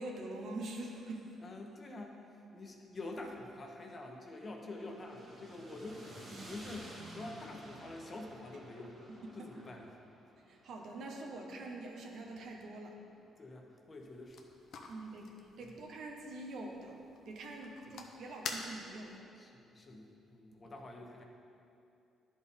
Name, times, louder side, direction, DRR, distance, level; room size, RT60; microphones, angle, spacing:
voice 1, 0.0-1.4 9.1-9.5 10.5-13.0 14.9-15.3 15.6-17.0 17.3-19.3, right 2 dB, 65° right, 1 dB, 0.9 m, -44 dB
voice 2, 1.4-2.2 2.5-9.0 9.3-10.0 13.4-14.5 15.6-15.8 17.9-18.0 19.4-21.2, left 2 dB, 30° left, 2 dB, 0.9 m, -47 dB
sound 1, 4.6-12.8, right 1 dB, 45° right, 1.6 m, -53 dB
sound 2, 14.0-19.2, left 4 dB, 70° left, 0.6 m, -48 dB
10.5 x 4.2 x 3.6 m, 2.6 s
cardioid pair, 105°, 0 cm